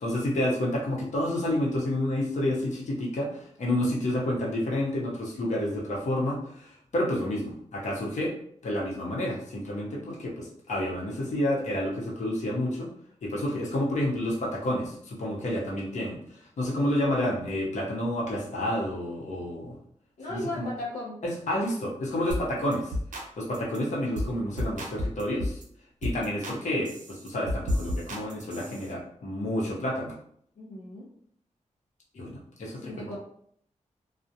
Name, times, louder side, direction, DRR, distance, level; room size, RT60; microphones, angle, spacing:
voice 1, 0.0-8.3 8.6-12.9 13.2-16.2 16.6-19.8 20.3-20.7 21.2-22.9 23.4-25.6 26.0-30.1 32.1-33.1, left 1 dB, 70° left, -3 dB, 0.8 m, -29 dB
voice 2, 20.2-21.2 30.6-31.1 32.8-33.2, left 2 dB, 90° left, -5 dB, 0.5 m, -36 dB
sound 1, 22.3-22.5 22.7-23.3 23.5-23.8 24.1-24.3 24.6-25.6 26.0-26.6 26.8-28.9, left 1 dB, 85° right, 0.5 m, -32 dB
2.4 x 2.0 x 2.7 m, 0.64 s
wide cardioid pair, 110°, 13 cm